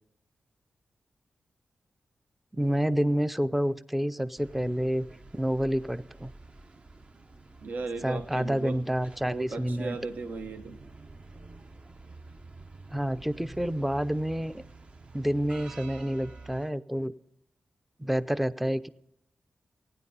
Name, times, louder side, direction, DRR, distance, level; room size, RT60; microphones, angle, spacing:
voice 1, 2.5-5.1 5.3-6.3 8.0-10.0 12.9-14.6 15.1-17.1 18.0-18.9, equal, 5° right, 14 dB, 0.5 m, -28 dB
sound 1, 4.4-16.7, right 3 dB, 40° right, 0.8 m, -49 dB
voice 2, 7.6-8.8 9.2-10.8, right 3 dB, 70° right, 7 dB, 1.0 m, -36 dB
15.5 x 9.7 x 5.4 m, 0.77 s
wide cardioid pair, 90°, 3 cm